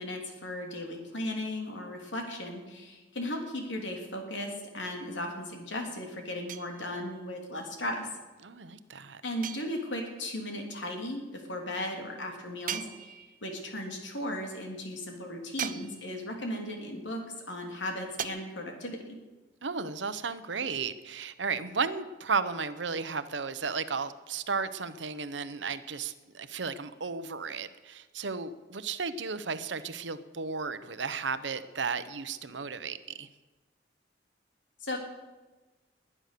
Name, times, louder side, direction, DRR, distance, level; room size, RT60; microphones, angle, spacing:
voice 1, 0.0-8.1 9.2-19.2 34.8-35.0, left 1 dB, 85° left, 2 dB, 3.2 m, -36 dB
sound 1, 6.5-7.2 9.4-10.2 12.7-13.6 15.6-16.4 18.2-18.3, right 9 dB, 45° right, 0.7 m, -39 dB
voice 2, 8.4-9.2 19.6-33.3, right 5 dB, 80° right, 12 dB, 1.0 m, -34 dB
20.5 x 10.0 x 6.8 m, 1.2 s
head